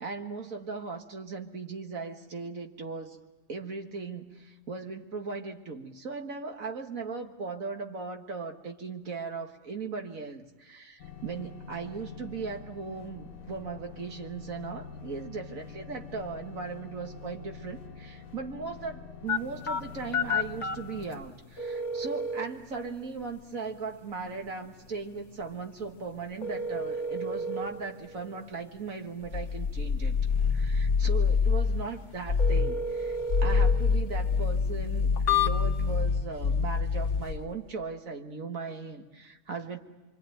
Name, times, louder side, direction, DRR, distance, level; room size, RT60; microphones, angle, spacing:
voice 1, 0.0-3.2 3.5-30.2 30.5-39.8, right 4 dB, 65° right, 4 dB, 2.0 m, -38 dB
sound 1, 11.0-21.2, left 5 dB, 75° left, 2.0 m, -46 dB
sound 2, 19.3-36.0, left 3 dB, 55° left, 1.6 m, -35 dB
sound 3, 29.2-31.9 32.2-32.8 33.2-37.4, left 5 dB, 35° left, 1.5 m, -26 dB
25.0 x 25.0 x 9.1 m, 1.2 s
omnidirectional pair, 1.5 m